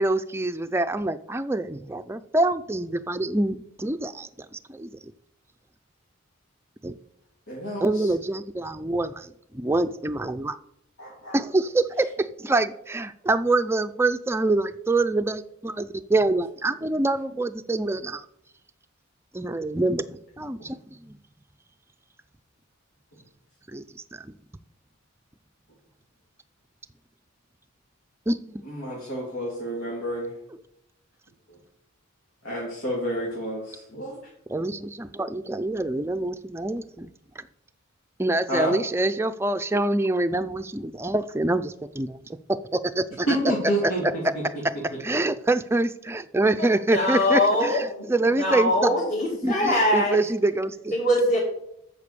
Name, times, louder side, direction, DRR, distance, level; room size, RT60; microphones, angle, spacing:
voice 1, 0.0-4.9 6.8-6.9 7.8-10.5 11.3-18.2 19.3-21.1 23.7-23.8 24.1-24.3 28.3-28.6 34.5-37.1 37.4-37.5 38.2-42.2 42.7-43.3 43.8-43.9 45.0-48.9 49.4-51.0, right 2 dB, 10° right, 9 dB, 0.4 m, -26 dB
voice 2, 7.5-8.1 11.0-11.4 28.6-30.3 32.4-34.2 38.5-38.8 43.3-44.4, right 1 dB, 90° left, -6 dB, 3.1 m, -29 dB
voice 3, 46.6-47.8 48.4-50.2 50.9-51.4, left 1 dB, 45° left, -5 dB, 2.5 m, -22 dB
8.5 x 6.9 x 6.7 m, 0.78 s
head